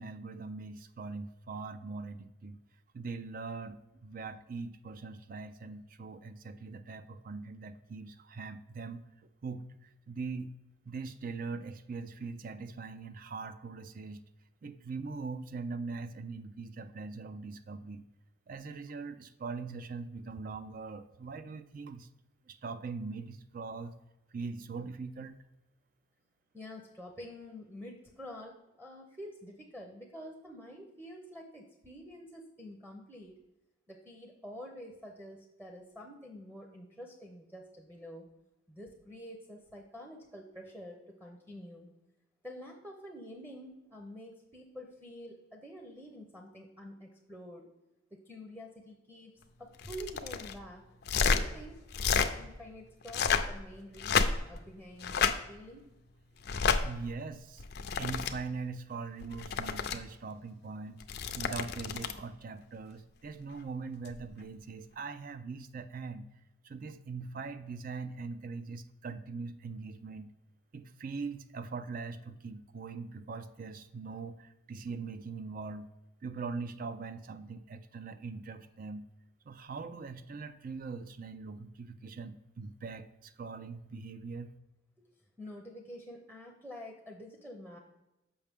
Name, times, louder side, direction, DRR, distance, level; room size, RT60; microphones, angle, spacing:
voice 1, 0.0-2.6 2.9-9.0 9.4-10.5 10.9-14.2 14.6-18.0 18.5-22.1 22.5-23.9 24.3-25.4 56.8-57.6 58.0-61.0 61.3-66.3 66.6-70.3 70.7-75.9 76.2-79.1 79.4-84.5, right 4 dB, 45° right, 12 dB, 0.4 m, -41 dB
voice 2, 26.5-33.3 33.9-38.3 38.7-41.9 42.4-47.7 48.1-49.3 49.6-50.8 51.1-51.8 52.2-55.8 85.0-85.1 85.4-87.8, equal, 10° right, 0 dB, 0.7 m, -48 dB
sound 1, 49.8-50.5 51.0-51.4 51.9-52.3 53.0-53.5 54.0-54.6 55.0-55.3 56.4-56.8 57.6-58.3 59.2-60.0 61.0-62.2 64.0-64.2, left 6 dB, 50° left, 0.5 m, -30 dB
7.0 x 5.5 x 3.5 m, 0.97 s
head